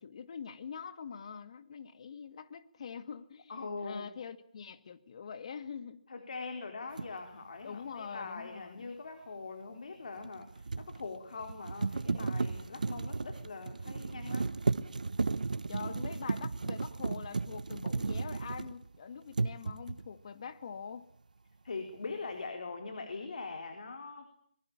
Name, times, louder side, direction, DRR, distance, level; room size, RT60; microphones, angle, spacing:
voice 1, 0.0-6.1 7.6-8.9 15.7-21.1, left 6 dB, 50° left, 2.0 m, -44 dB
voice 2, 3.5-4.1 6.1-14.5 21.6-24.3, left 4 dB, 65° left, 4.0 m, -42 dB
sound 1, 7.0-7.1 10.2-19.0 19.3-20.1, right 3 dB, 80° right, 1.2 m, -34 dB
25.0 x 22.0 x 8.7 m
hypercardioid pair, 160°, 4 cm